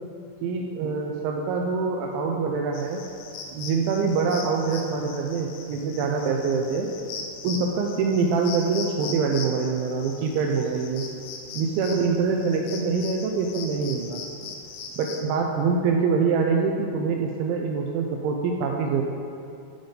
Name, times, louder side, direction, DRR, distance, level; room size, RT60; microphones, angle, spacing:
voice 1, 0.4-3.0 3.5-6.9 7.4-11.1 11.5-14.2 15.0-19.0, right 5 dB, 85° right, 1 dB, 2.6 m, -25 dB
sound 1, 2.7-15.2, left 5 dB, 80° left, 3.0 m, -40 dB
11.5 x 3.9 x 5.1 m, 2.5 s
omnidirectional pair, 5.8 m